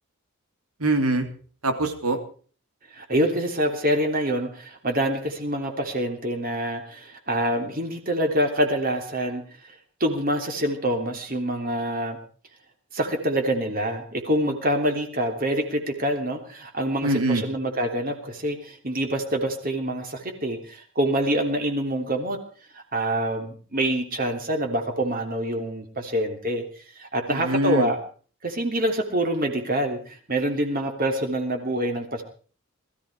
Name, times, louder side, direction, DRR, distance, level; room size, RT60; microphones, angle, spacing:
voice 1, 0.8-1.3 1.6-2.2 17.0-17.4 27.3-27.9, right 2 dB, 90° right, 6 dB, 3.4 m, -23 dB
voice 2, 2.9-9.4 10.0-12.2 12.9-22.4 22.7-26.6 26.9-28.0 28.4-32.2, right 1 dB, 40° right, 4 dB, 3.1 m, -26 dB
21.0 x 14.0 x 4.9 m, 0.42 s
head